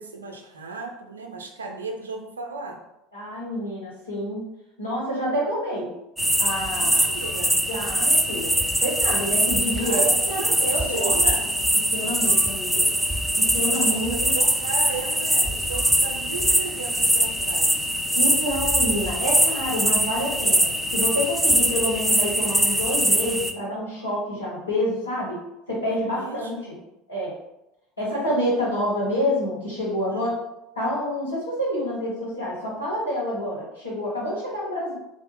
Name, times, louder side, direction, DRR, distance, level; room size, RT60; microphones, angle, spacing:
voice 1, 0.0-2.8 6.7-7.6 9.8-11.5 13.7-17.9 25.8-26.8 28.0-28.7 30.1-30.3, right 3 dB, 80° right, 3 dB, 0.4 m, -36 dB
voice 2, 3.1-4.4 4.8-5.9 6.4-7.1 7.7-11.1 11.9-12.8 13.4-14.3 18.1-25.4 25.7-26.6 27.1-27.3 28.0-30.3 30.7-34.9, equal, 85° left, -6 dB, 1.1 m, -28 dB
sound 1, 6.2-23.5, right 1 dB, 5° right, 0.3 m, -22 dB
3.2 x 2.0 x 3.5 m, 0.89 s
figure-of-eight pair, 70°, 0 cm